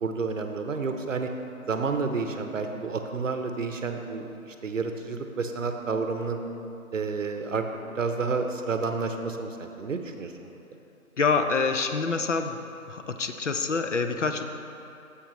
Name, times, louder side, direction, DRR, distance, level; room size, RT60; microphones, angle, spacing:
voice 1, 0.0-1.3 1.7-6.4 6.9-7.7 7.9-10.5, right 4 dB, 60° right, 6 dB, 0.8 m, -30 dB
voice 2, 11.2-12.6 12.9-14.4, left 4 dB, 55° left, 7 dB, 0.6 m, -26 dB
10.5 x 7.2 x 3.0 m, 2.8 s
figure-of-eight pair, 160°, 44 cm